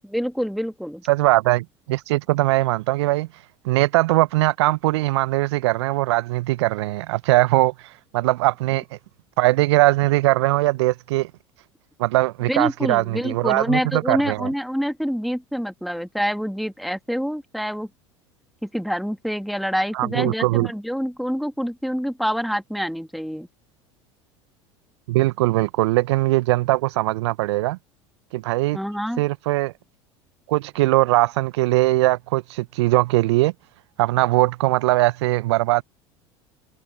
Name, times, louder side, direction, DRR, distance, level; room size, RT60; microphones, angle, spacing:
voice 1, 0.0-1.0 12.5-17.9 18.6-23.5 28.7-29.2, equal, ahead, 2.3 m, -26 dB
voice 2, 1.1-3.3 3.6-8.8 9.4-11.3 12.0-14.5 19.9-20.7 25.1-27.8 28.3-28.8 29.2-29.7 30.5-33.5 34.0-35.8, right 19 dB, 65° right, 0.8 m, -20 dB
figure-of-eight pair, 75°, 15 cm